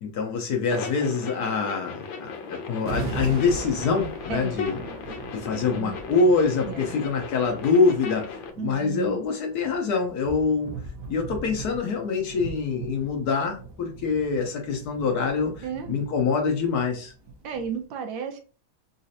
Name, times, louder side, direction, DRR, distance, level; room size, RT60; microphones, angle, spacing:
voice 1, 0.0-4.8 5.3-10.8 11.1-17.1, left 4 dB, 65° left, 1 dB, 1.1 m, -25 dB
sound 1, 0.7-8.5, left 5 dB, 85° left, 1.4 m, -37 dB
sound 2, 1.7-1.8 2.9-17.8, right 3 dB, 60° right, 1.1 m, -40 dB
voice 2, 5.5-5.9 6.6-7.0 8.6-9.2 15.6-16.0 17.4-18.4, right 7 dB, 90° right, 5 dB, 1.4 m, -33 dB
4.0 x 2.5 x 2.7 m, 0.38 s
omnidirectional pair, 2.1 m